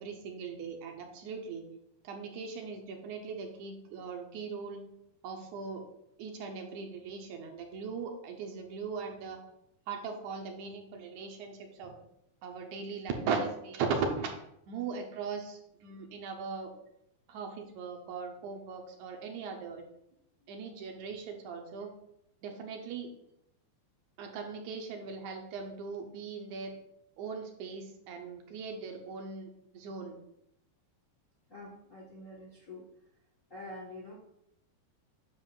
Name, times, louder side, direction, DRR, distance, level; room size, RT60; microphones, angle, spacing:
voice 1, 0.0-1.6 2.0-4.8 5.2-5.8 6.2-9.4 9.9-11.9 12.4-14.3 14.7-16.7 17.3-19.9 20.5-21.9 22.4-23.1 24.2-26.8 27.2-30.2, right 5 dB, 70° right, 3 dB, 2.1 m, -39 dB
voice 2, 31.5-32.9 33.5-34.1, left 1 dB, 45° left, -4 dB, 1.0 m, -46 dB
9.5 x 6.9 x 2.4 m, 0.78 s
omnidirectional pair, 3.6 m